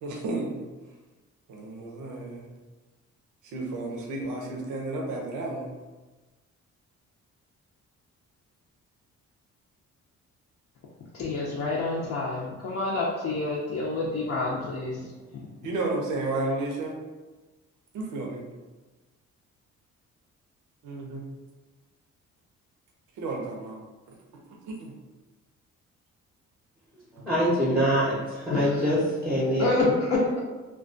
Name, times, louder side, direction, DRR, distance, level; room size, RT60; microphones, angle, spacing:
voice 1, 0.0-0.7 1.5-2.5 3.4-5.7 15.6-17.0 17.9-18.5 20.8-21.2 23.2-23.8 24.5-24.9, right 2 dB, 85° right, 0 dB, 0.6 m, -32 dB
voice 2, 11.1-15.0 28.5-28.8 29.6-30.4, left 3 dB, 55° left, -5 dB, 0.5 m, -28 dB
voice 3, 27.1-29.8, equal, 5° right, -7 dB, 0.6 m, -24 dB
2.3 x 2.2 x 2.5 m, 1.2 s
cardioid pair, 90°, 30 cm